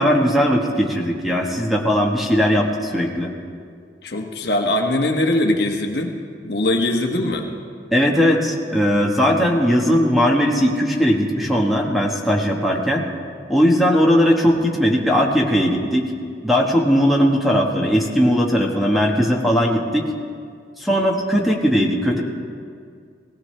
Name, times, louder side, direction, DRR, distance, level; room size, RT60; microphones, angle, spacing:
voice 1, 0.0-3.3 7.9-13.0 13.5-16.1 16.4-20.1 20.8-22.2, equal, ahead, -1 dB, 1.2 m, -18 dB
voice 2, 4.0-6.2 6.4-7.4, left 1 dB, 55° left, 3 dB, 1.2 m, -21 dB
18.0 x 17.0 x 3.3 m, 2.2 s
head